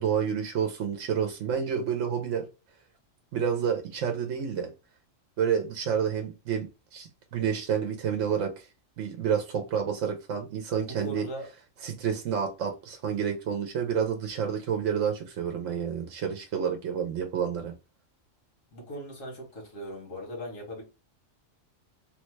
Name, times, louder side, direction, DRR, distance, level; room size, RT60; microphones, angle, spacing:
voice 1, 0.0-2.5 3.3-4.7 5.4-8.7 9.0-11.3 11.8-17.7, right 7 dB, 75° right, 0.9 m, -29 dB
voice 2, 10.8-11.5 18.7-20.8, equal, 80° left, 1.6 m, -39 dB
3.3 x 2.1 x 3.1 m
omnidirectional pair, 1.3 m